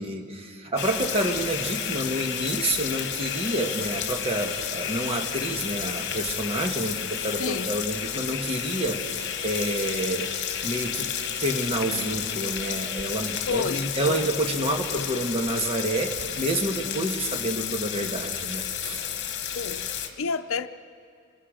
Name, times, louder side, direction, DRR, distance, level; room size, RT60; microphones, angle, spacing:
voice 1, 0.0-10.3 10.6-11.1 11.4-19.0, right 1 dB, 30° right, 3 dB, 1.5 m, -29 dB
sound 1, 0.8-20.1, left 8 dB, 55° left, 1.4 m, -31 dB
voice 2, 7.4-7.7 13.5-14.3 14.6-15.1 19.5-20.7, left 4 dB, 75° left, 10 dB, 0.7 m, -31 dB
25.0 x 21.5 x 5.1 m, 2.3 s
head